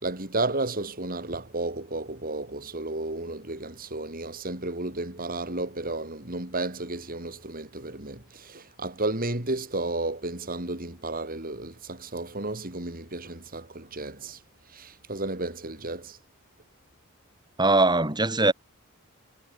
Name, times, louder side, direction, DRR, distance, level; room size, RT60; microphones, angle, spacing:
voice 1, 0.0-14.4 14.7-16.2, right 2 dB, 40° right, 4.0 m, -32 dB
voice 2, 17.6-18.5, right 2 dB, 20° right, 4.4 m, -21 dB
head